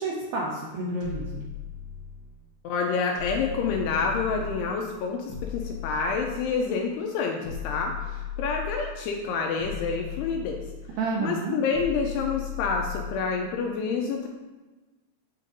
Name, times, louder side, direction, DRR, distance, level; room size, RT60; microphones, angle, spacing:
voice 1, 0.0-1.5 11.0-11.6, right 3 dB, 85° right, -3 dB, 2.1 m, -30 dB
sound 1, 1.0-2.3 3.2-4.8 5.3-6.7 7.4-9.0 9.6-11.0 11.7-13.3, left 9 dB, 65° left, 1.9 m, -36 dB
voice 2, 2.6-10.6 11.2-14.3, left 5 dB, 85° left, 1 dB, 2.4 m, -28 dB
7.4 x 7.3 x 2.6 m, 1.2 s
omnidirectional pair, 5.1 m